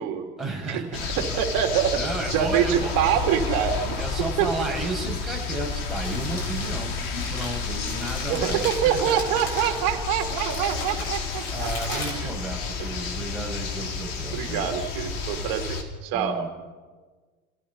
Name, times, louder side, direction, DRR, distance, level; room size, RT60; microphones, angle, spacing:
voice 1, 0.4-1.1 1.9-2.9 4.0-9.2 11.5-14.7 16.1-16.5, right 2 dB, ahead, -3 dB, 7.5 m, -33 dB
sound 1, 0.9-15.8, left 5 dB, 45° left, 3.8 m, -31 dB
voice 2, 1.2-2.0 2.3-4.5 8.3-12.3 14.3-16.4, right 9 dB, 50° right, 4 dB, 3.3 m, -25 dB
Crumpling crinkling, 5.7-13.0, left 2 dB, 80° left, 7.4 m, -38 dB
29.5 x 17.0 x 5.7 m, 1.4 s
hypercardioid pair, 105°, 44 cm